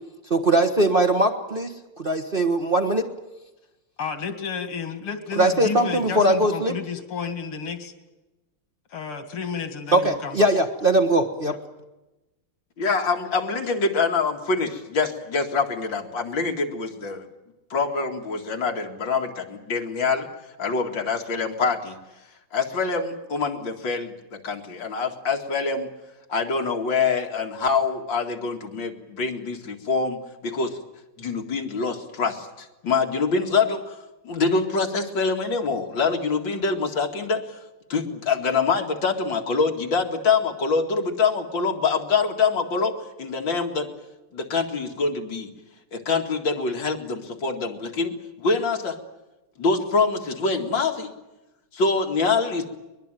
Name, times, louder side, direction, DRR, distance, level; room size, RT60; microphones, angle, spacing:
voice 1, 0.3-3.1 5.4-6.7 9.9-11.6, right 1 dB, 30° right, 5 dB, 1.3 m, -21 dB
voice 2, 4.0-7.9 8.9-10.5 11.5-11.6, left 6 dB, 85° left, 9 dB, 3.0 m, -32 dB
voice 3, 12.8-17.3 17.7-20.3 20.6-22.0 22.5-25.9 26.3-30.8 31.2-34.0 34.2-37.6 37.9-42.9 43.2-43.9 44.3-45.5 45.9-49.0 49.6-51.1 51.7-52.7, left 4 dB, 60° left, 3 dB, 2.9 m, -25 dB
23.0 x 21.0 x 9.2 m, 1.0 s
omnidirectional pair, 2.3 m